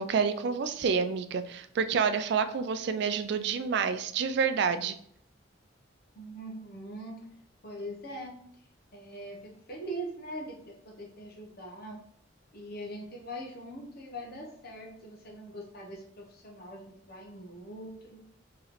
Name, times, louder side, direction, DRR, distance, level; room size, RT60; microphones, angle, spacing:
voice 1, 0.0-5.0, right 6 dB, 60° right, 10 dB, 0.3 m, -28 dB
voice 2, 6.1-7.2 7.6-8.4 8.9-12.0 12.5-18.2, right 1 dB, 55° left, -1 dB, 1.0 m, -42 dB
4.6 x 3.1 x 3.2 m, 0.66 s
head